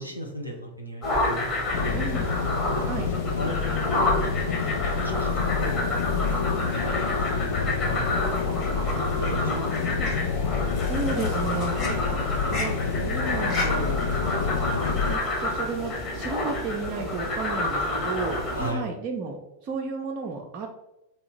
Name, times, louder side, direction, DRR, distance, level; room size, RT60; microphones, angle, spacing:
voice 1, 0.0-2.4 2.9-3.6 3.9-5.3 5.6-5.7 6.4-8.7 9.2-9.5 18.5-18.9, right 1 dB, 90° left, 0 dB, 0.8 m, -37 dB
sound 1, 1.0-18.7, left 2 dB, 30° left, 1.1 m, -29 dB
sound 2, 1.7-15.2, left 5 dB, 60° left, 0.3 m, -28 dB
voice 2, 1.9-2.3 2.9-3.1 8.9-10.1 10.8-12.2 12.5-14.0 15.0-20.7, right 4 dB, 35° right, 0 dB, 0.5 m, -33 dB
3.5 x 2.8 x 3.9 m, 0.90 s
figure-of-eight pair, 90°, 0 cm